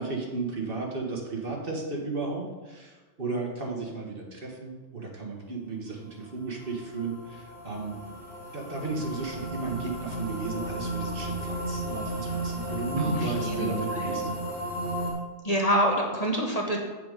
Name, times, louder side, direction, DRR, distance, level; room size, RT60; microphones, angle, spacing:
voice 1, 0.0-8.0 8.5-14.3, right 3 dB, 50° right, -1 dB, 1.7 m, -34 dB
sound 1, 6.6-15.1, right 1 dB, 85° right, 3.2 m, -34 dB
voice 2, 13.0-14.2 15.4-16.8, equal, 35° left, 0 dB, 1.1 m, -27 dB
7.8 x 6.9 x 5.2 m, 1.2 s
omnidirectional pair, 1.2 m